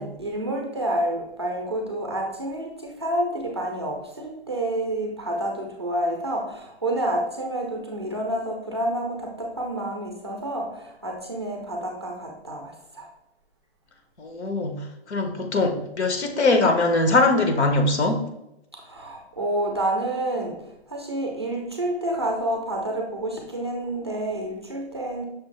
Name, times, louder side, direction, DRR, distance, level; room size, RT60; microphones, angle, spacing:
voice 1, 0.0-13.1 18.8-25.2, right 1 dB, 25° right, 0 dB, 0.4 m, -29 dB
voice 2, 14.2-18.2, left 2 dB, 85° left, 6 dB, 1.0 m, -22 dB
6.1 x 2.4 x 3.1 m, 0.84 s
hypercardioid pair, 170°, 33 cm